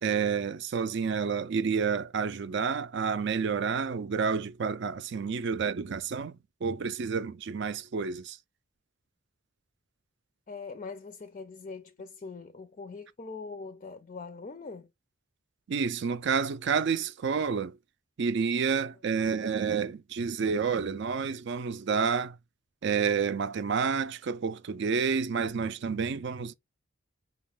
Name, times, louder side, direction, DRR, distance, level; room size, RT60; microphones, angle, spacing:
voice 1, 0.0-8.4 15.7-17.8 18.2-22.4 22.8-26.5, right 5 dB, 55° right, 0.4 m, -29 dB
voice 2, 10.5-14.9, left 4 dB, 35° left, 0.4 m, -42 dB
5.3 x 2.4 x 3.5 m
head